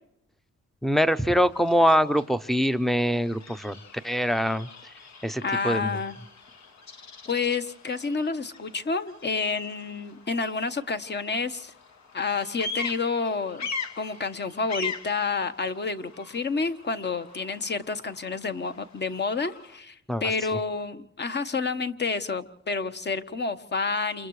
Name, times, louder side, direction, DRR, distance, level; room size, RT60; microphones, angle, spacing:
voice 1, 0.8-3.8 4.0-4.7 5.2-5.9 20.1-20.2, equal, ahead, 13 dB, 0.7 m, -23 dB
Bird vocalization bird call bird song, 1.0-19.8, left 4 dB, 65° left, 1.9 m, -42 dB
voice 2, 5.4-6.1 7.3-11.7 12.1-13.7 14.0-24.3, left 4 dB, 35° left, 10 dB, 1.2 m, -29 dB
29.0 x 28.5 x 3.2 m, 0.75 s
wide cardioid pair, 125°, 29 cm